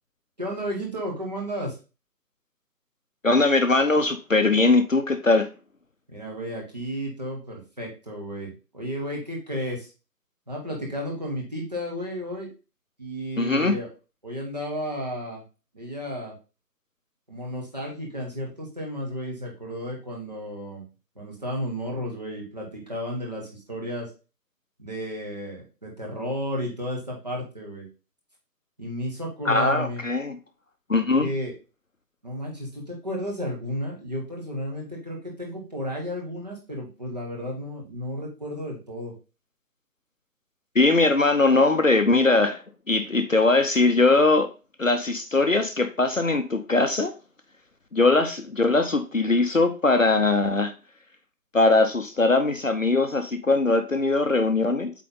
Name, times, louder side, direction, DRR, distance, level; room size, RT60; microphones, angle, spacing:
voice 1, 0.4-1.8 6.1-9.9 10.5-12.5 13.0-13.9 14.2-15.4 15.7-16.3 17.3-20.9 21.1-24.1 24.8-27.9 28.8-30.0 31.2-31.5 32.2-39.1, equal, 25° right, -2 dB, 1.6 m, -33 dB
voice 2, 3.2-5.5 13.4-13.8 29.5-30.4 30.9-31.3 40.7-44.5 44.8-47.1 47.9-50.7 51.5-54.9, left 3 dB, 50° left, 8 dB, 0.8 m, -21 dB
8.3 x 3.9 x 3.8 m, 0.31 s
figure-of-eight pair, 175°, 50 cm